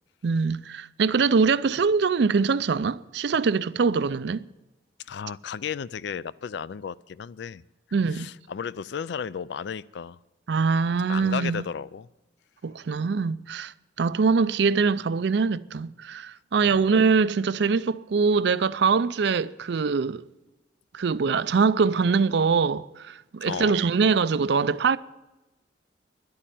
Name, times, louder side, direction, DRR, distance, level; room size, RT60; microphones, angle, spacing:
voice 1, 0.2-4.4 7.9-8.3 10.5-11.6 12.6-13.7 14.0-20.3 20.9-25.0, right 5 dB, 60° right, 0.4 m, -23 dB
voice 2, 5.0-7.6 8.1-10.2 11.1-12.1 16.7-16.8 23.4-23.9, left 7 dB, 60° left, 0.3 m, -34 dB
11.0 x 8.6 x 9.1 m
head